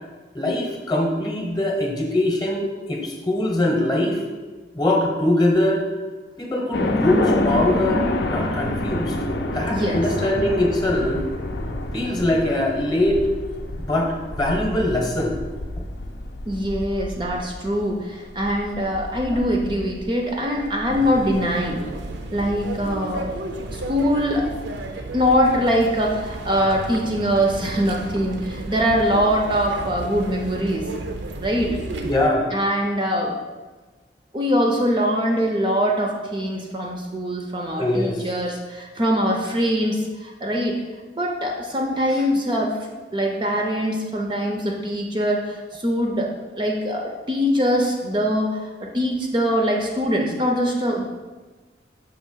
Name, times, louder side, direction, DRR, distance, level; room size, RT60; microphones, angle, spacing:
voice 1, 0.3-4.2 4.7-5.8 6.4-9.2 9.5-11.2 11.9-13.2 13.8-15.3 19.3-19.4 32.0-32.5 37.8-38.2, left 1 dB, 20° left, 1 dB, 0.9 m, -22 dB
sound 1, 6.7-21.9, left 1 dB, 60° left, 0.5 m, -28 dB
voice 2, 9.7-10.0 16.5-21.8 22.3-23.3 23.7-24.5 25.1-30.9 31.4-31.7 32.5-33.3 34.3-40.8 41.2-42.8 43.1-51.0, equal, 25° right, 0 dB, 0.5 m, -23 dB
sound 2, 20.9-32.3, right 2 dB, 70° right, 0.6 m, -33 dB
6.2 x 2.9 x 5.5 m, 1.3 s
head